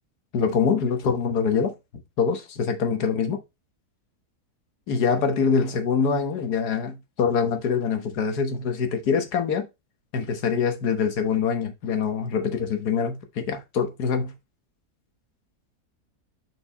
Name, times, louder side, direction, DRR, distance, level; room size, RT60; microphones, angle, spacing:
voice 1, 0.3-1.7 2.2-3.4 4.9-9.7 10.1-14.4, left 6 dB, 80° left, 1.7 m, -24 dB
6.0 x 4.5 x 4.1 m
omnidirectional pair, 1.7 m